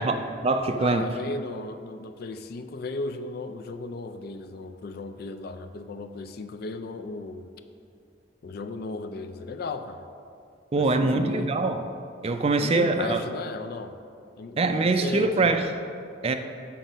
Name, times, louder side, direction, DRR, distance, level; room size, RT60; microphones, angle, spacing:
voice 1, 0.0-1.1 10.7-11.8 12.2-13.2 14.6-15.7 16.2-16.4, right 3 dB, 30° right, 7 dB, 0.4 m, -23 dB
voice 2, 0.8-7.5 8.4-10.1 10.7-11.6 12.6-14.0 14.4-15.5, left 3 dB, 55° left, 8 dB, 0.4 m, -35 dB
7.7 x 3.9 x 5.4 m, 2.4 s
head